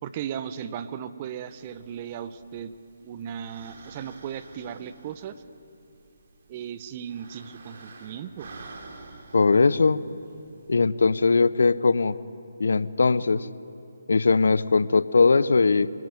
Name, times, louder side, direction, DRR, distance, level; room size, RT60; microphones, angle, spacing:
voice 1, 0.0-2.7 3.0-5.4 6.5-8.5, right 8 dB, 30° right, 12 dB, 1.1 m, -36 dB
sound 1, 1.5-10.8, right 3 dB, 50° right, 3.3 m, -49 dB
voice 2, 9.3-10.0 10.7-12.2 12.6-13.5 14.1-15.9, left 4 dB, 70° left, 17 dB, 0.9 m, -20 dB
25.5 x 19.0 x 9.1 m, 2.6 s
figure-of-eight pair, 150°, 0 cm